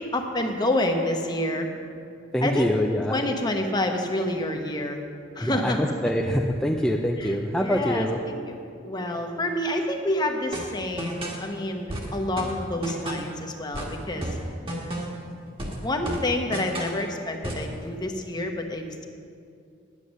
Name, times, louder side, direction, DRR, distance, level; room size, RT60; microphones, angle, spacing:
voice 1, 0.0-1.7 2.4-2.7 3.1-5.0 5.3-5.8 7.2-7.4 7.6-8.5 8.8-14.3 15.8-19.1, left 1 dB, 20° left, 4 dB, 0.9 m, -28 dB
voice 2, 2.3-3.2 5.4-8.2, equal, 5° left, 0 dB, 0.4 m, -25 dB
sound 1, 10.5-11.5 11.9-13.4 13.7-15.3 15.6-17.0 17.4-17.7, right 1 dB, 30° right, 1.5 m, -33 dB
9.9 x 8.2 x 6.3 m, 2.4 s
head